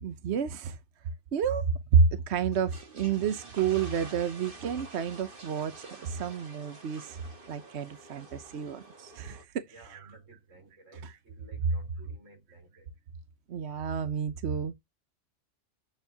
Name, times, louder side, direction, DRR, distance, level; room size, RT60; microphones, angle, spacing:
voice 1, 0.0-0.8 1.3-7.2 7.5-9.5 9.9-10.2 10.9-11.2 13.5-14.7, right 6 dB, 65° right, 1.0 m, -29 dB
sound 1, 2.4-9.4, right 3 dB, 45° right, 1.9 m, -49 dB
voice 2, 9.7-12.9, right 2 dB, 85° right, 4.2 m, -55 dB
7.9 x 7.0 x 2.8 m
omnidirectional pair, 1.3 m